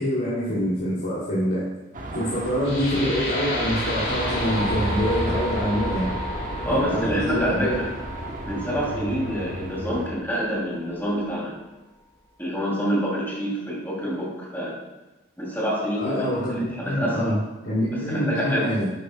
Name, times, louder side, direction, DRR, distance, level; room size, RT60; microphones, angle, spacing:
voice 1, 0.0-1.6 2.1-6.1 6.6-7.8 16.0-17.4 17.6-18.9, equal, 75° left, -10 dB, 2.7 m, -25 dB
Car passing by / Traffic noise roadway noise / Engine, 1.9-10.1, right 2 dB, 45° right, 0.9 m, -33 dB
sound 1, 2.6-10.7, left 1 dB, 60° left, 2.2 m, -32 dB
voice 2, 6.6-7.8 8.5-11.5 12.4-14.7 15.4-17.3 17.9-18.7, equal, 10° left, -5 dB, 2.7 m, -27 dB
11.0 x 8.4 x 2.2 m, 1.1 s
head